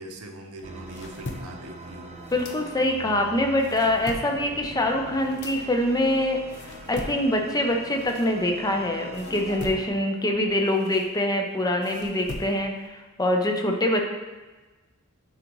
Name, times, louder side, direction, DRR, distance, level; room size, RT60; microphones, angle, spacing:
voice 1, 0.0-2.2, right 1 dB, 75° right, 3 dB, 0.8 m, -41 dB
sound 1, 0.6-3.1 3.5-8.8 9.1-12.9, left 2 dB, 55° left, 0.6 m, -41 dB
sound 2, 0.6-9.6, right 1 dB, 30° right, 0.6 m, -43 dB
voice 2, 2.3-14.0, left 1 dB, 15° left, 3 dB, 0.6 m, -24 dB
9.4 x 3.9 x 3.1 m, 1.2 s
head